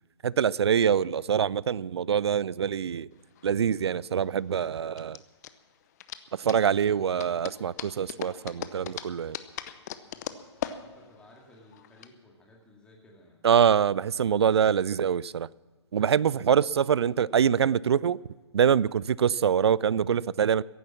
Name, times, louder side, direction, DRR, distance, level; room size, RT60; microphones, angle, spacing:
voice 1, 0.2-3.1 3.4-5.2 6.3-9.4 13.4-15.5 15.9-18.2 18.5-20.6, right 8 dB, 65° right, 0.4 m, -24 dB
sound 1, 3.2-12.1, left 11 dB, 35° left, 0.8 m, -40 dB
voice 2, 10.0-13.4 16.3-16.6, left 1 dB, 5° left, 2.2 m, -56 dB
15.5 x 11.0 x 7.2 m
figure-of-eight pair, 130°, 15 cm